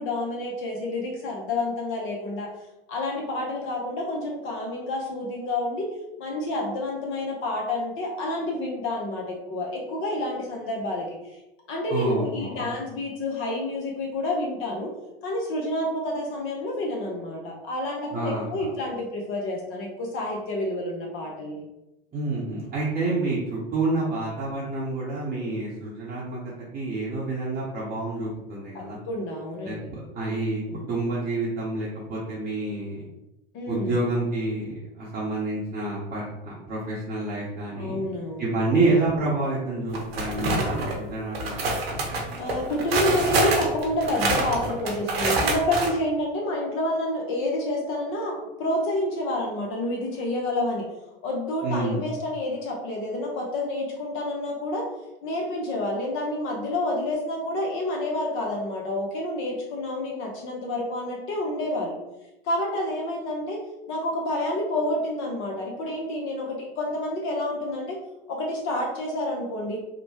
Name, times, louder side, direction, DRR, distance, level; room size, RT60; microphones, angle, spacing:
voice 1, 0.0-2.5 2.9-5.9 6.2-11.1 11.7-14.9 15.2-21.6 28.7-29.9 30.7-30.9 33.5-34.0 37.8-38.5 42.4-50.9 51.2-54.8 55.2-62.0 62.4-63.6 63.9-68.0 68.3-69.8, left 1 dB, 40° left, -1 dB, 0.7 m, -29 dB
voice 2, 11.9-12.7 18.1-18.7 22.1-26.4 26.7-29.0 29.6-30.6 30.9-33.0 33.6-38.0 38.4-41.5 51.6-52.0, right 2 dB, 30° right, -7 dB, 0.8 m, -28 dB
sound 1, 39.9-41.0 41.3-45.9, right 2 dB, 80° right, 0.7 m, -26 dB
2.9 x 2.0 x 2.8 m, 0.96 s
hypercardioid pair, 90°, 30 cm